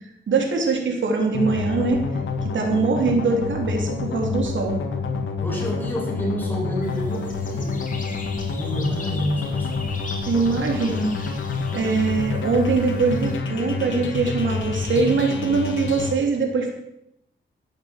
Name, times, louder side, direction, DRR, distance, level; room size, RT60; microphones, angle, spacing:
voice 1, 0.3-2.0 2.4-4.8 10.3-11.3 11.7-16.7, right 4 dB, 80° right, 2 dB, 3.3 m, -22 dB
sound 1, 1.3-16.1, left 4 dB, 85° left, 2.1 m, -28 dB
voice 2, 5.4-7.8 8.6-9.9, equal, 10° left, -3 dB, 6.9 m, -28 dB
sound 2, 6.8-13.4, left 3 dB, 45° left, 3.4 m, -40 dB
14.0 x 9.0 x 7.4 m, 0.81 s
cardioid pair, 90°, 19 cm